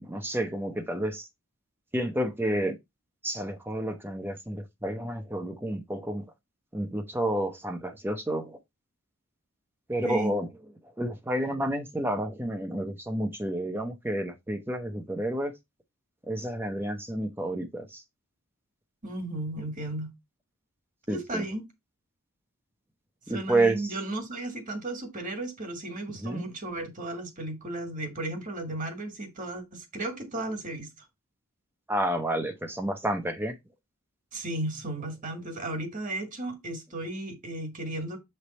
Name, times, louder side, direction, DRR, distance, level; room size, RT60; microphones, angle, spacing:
voice 1, 0.1-1.2 1.9-2.8 3.2-6.2 6.7-8.6 9.9-10.5 11.0-15.5 16.3-18.0 21.1-21.4 23.3-23.9 26.2-26.4 31.9-33.6, right 1 dB, 10° right, 0.7 m, -30 dB
voice 2, 19.0-20.1 21.1-21.6 23.3-30.9 34.3-38.2, right 1 dB, 40° right, 1.7 m, -34 dB
7.2 x 3.3 x 4.1 m
head